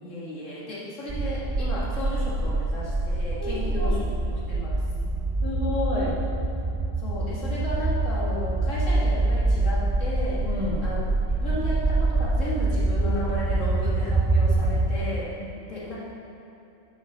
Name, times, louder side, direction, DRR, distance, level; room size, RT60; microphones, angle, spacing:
voice 1, 0.0-4.0 4.3-4.8 7.0-10.5 10.8-11.0 11.4-15.3 15.7-16.0, left 1 dB, 85° left, -8 dB, 2.3 m, -34 dB
sound 1, 1.1-15.0, right 2 dB, 35° right, 0.4 m, -25 dB
voice 2, 3.4-4.0 5.4-6.1 10.4-10.8 14.6-14.8, left 2 dB, 30° left, -6 dB, 1.6 m, -30 dB
8.4 x 5.0 x 6.4 m, 2.9 s
omnidirectional pair, 1.3 m